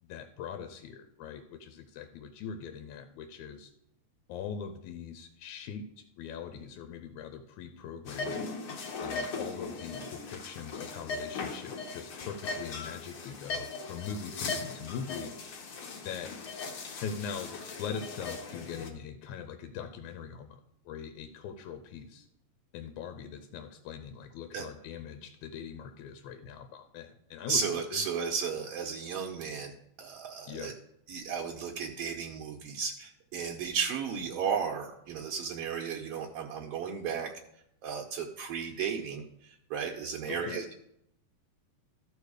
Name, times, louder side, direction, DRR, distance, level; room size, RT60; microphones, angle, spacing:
voice 1, 0.0-3.7 4.3-8.5 9.0-15.3 16.0-16.3 17.0-17.5 17.8-20.6 20.9-22.3 22.7-28.0 30.5-30.8 40.3-40.7, left 7 dB, 90° left, 8 dB, 2.1 m, -41 dB
sound 1, 8.1-18.9, left 4 dB, 60° left, 1.6 m, -39 dB
voice 2, 27.5-29.7 30.0-30.7 31.1-37.3 37.8-39.2 39.7-40.8, right 6 dB, 75° right, 0 dB, 1.5 m, -34 dB
13.5 x 4.5 x 4.9 m, 0.77 s
omnidirectional pair, 3.4 m